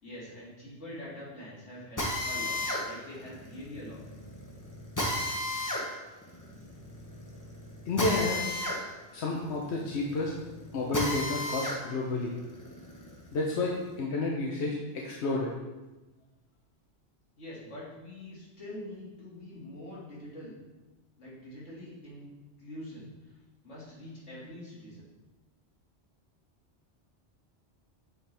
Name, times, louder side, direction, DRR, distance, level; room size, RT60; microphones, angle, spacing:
voice 1, 0.0-4.0 17.4-20.5 21.2-22.3 22.6-23.3 23.6-25.1, left 1 dB, 90° left, -7 dB, 2.5 m, -44 dB
Drill, 2.0-11.8 12.2-13.9, left 1 dB, 20° left, 0.9 m, -34 dB
voice 2, 7.9-8.5 9.1-10.3 10.7-12.4 13.3-15.5, left 3 dB, 70° left, -2 dB, 1.0 m, -30 dB
8.0 x 4.4 x 3.4 m, 1.1 s
omnidirectional pair, 1.2 m